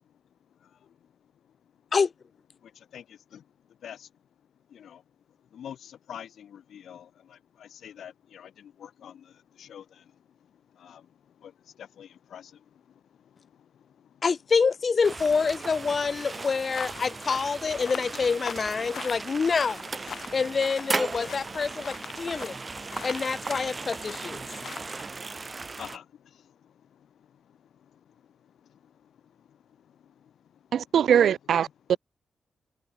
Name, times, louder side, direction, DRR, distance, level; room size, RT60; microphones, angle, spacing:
voice 1, 0.6-1.0 2.6-3.4 3.8-4.1 4.7-5.0 5.5-10.1 10.7-14.2 20.2-20.4 21.3-21.4 22.2-23.1 23.9-30.3, left 9 dB, 80° left, 7.5 m, -49 dB
voice 2, 14.2-19.9 20.3-22.6 23.0-24.4, left 5 dB, 40° left, 1.7 m, -26 dB
sound 1, 15.0-26.0, right 3 dB, 30° right, 2.8 m, -37 dB
sound 2, 16.7-25.0, left 7 dB, 60° left, 3.5 m, -42 dB
voice 3, 30.7-32.0, right 8 dB, 75° right, 0.8 m, -22 dB
wide cardioid pair, 125°, 0 cm